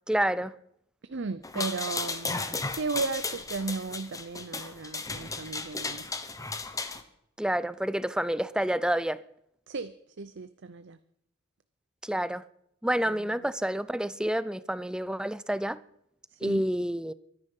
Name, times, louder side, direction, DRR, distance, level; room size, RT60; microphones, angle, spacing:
voice 1, 0.1-0.5 7.4-9.2 12.0-12.4 12.8-15.8 16.4-17.1, right 1 dB, 5° right, 0.5 m, -28 dB
voice 2, 1.0-6.1 9.7-11.0 13.1-13.4 16.3-16.7, right 4 dB, 60° right, 0.7 m, -35 dB
sound 1, 1.4-7.0, left 3 dB, 15° left, 1.2 m, -35 dB
23.0 x 10.5 x 5.5 m
head